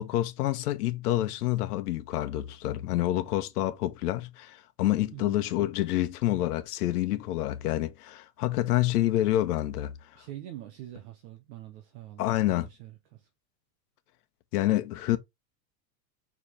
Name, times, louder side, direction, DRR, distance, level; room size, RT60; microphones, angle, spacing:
voice 1, 0.0-9.9 12.2-12.7 14.5-15.2, left 14 dB, 65° left, 1.2 m, -28 dB
voice 2, 5.1-5.5 10.1-13.3, right 13 dB, 45° right, 1.2 m, -45 dB
6.0 x 4.8 x 3.4 m
supercardioid pair, 180°, 49 cm